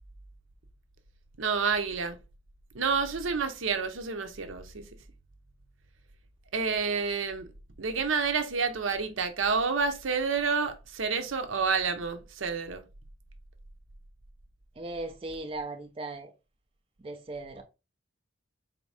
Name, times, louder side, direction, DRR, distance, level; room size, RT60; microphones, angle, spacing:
voice 1, 1.4-2.2 2.7-4.9 6.5-7.5 7.8-12.8, right 5 dB, 75° right, 0.7 m, -29 dB
voice 2, 14.8-16.3 17.0-17.6, right 2 dB, 30° right, 0.4 m, -37 dB
4.3 x 2.7 x 3.2 m
head